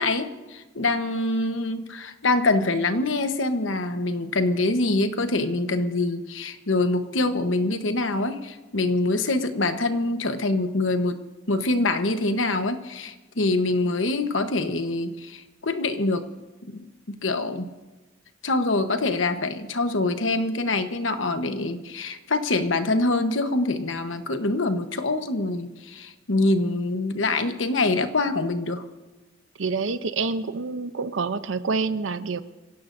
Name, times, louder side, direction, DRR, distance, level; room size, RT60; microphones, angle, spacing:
voice 1, 0.0-11.2 11.5-16.3 16.7-17.7 18.4-28.8, left 2 dB, 75° left, 8 dB, 1.2 m, -25 dB
voice 2, 29.6-32.4, right 4 dB, 75° right, 12 dB, 0.7 m, -27 dB
26.0 x 16.5 x 2.7 m, 1.2 s
head